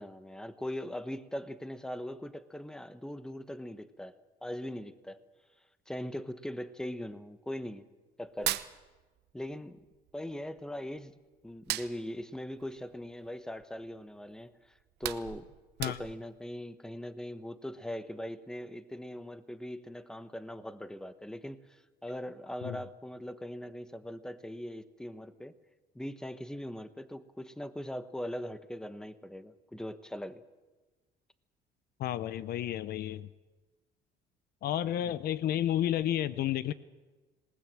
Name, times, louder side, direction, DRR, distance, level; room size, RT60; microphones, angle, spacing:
voice 1, 0.0-5.2 5.9-7.9 8.2-8.6 9.3-9.8 10.1-11.1 11.4-14.7 15.0-15.5 15.8-25.6 25.9-30.4 35.0-35.1, left 1 dB, 5° left, 12 dB, 1.1 m, -40 dB
Hands, 8.2-9.5 9.8-11.1 11.5-13.8 14.2-14.4 14.7-16.4, right 15 dB, 75° right, 1.0 m, -38 dB
voice 2, 32.0-33.3 34.6-36.7, left 11 dB, 65° left, 16 dB, 0.8 m, -31 dB
26.5 x 19.0 x 7.6 m, 1.2 s
cardioid pair, 110°, 17 cm